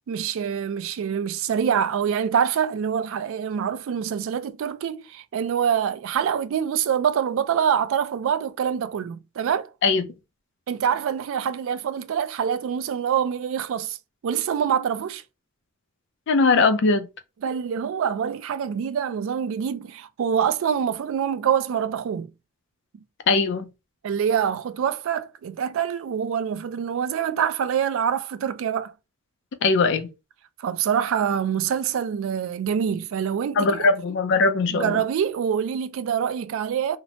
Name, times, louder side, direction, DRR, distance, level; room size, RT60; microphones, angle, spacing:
voice 1, 0.1-9.7 10.7-14.0 14.2-15.2 17.4-22.3 24.0-28.9 30.6-33.9 34.7-37.0, right 8 dB, 65° right, 0.3 m, -25 dB
voice 2, 16.3-17.1 23.3-23.7 29.6-30.1 33.6-35.0, left 3 dB, 60° left, 0.4 m, -20 dB
2.8 x 2.1 x 2.7 m
head